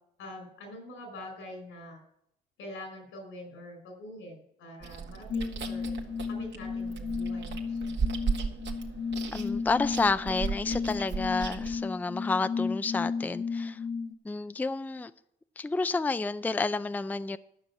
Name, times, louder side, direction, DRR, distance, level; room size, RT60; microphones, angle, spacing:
voice 1, 0.2-2.0 2.6-5.9 6.3-8.0, left 1 dB, 90° left, 4.8 m, -45 dB
Chewing mastication, 4.8-11.8, right 5 dB, 65° right, 1.9 m, -36 dB
sound 1, 5.3-14.1, left 5 dB, 70° left, 1.5 m, -34 dB
voice 2, 9.3-13.8 14.2-15.1 15.6-17.4, left 3 dB, 10° left, 0.4 m, -30 dB
12.0 x 6.2 x 8.5 m
cardioid pair, 90°, 20 cm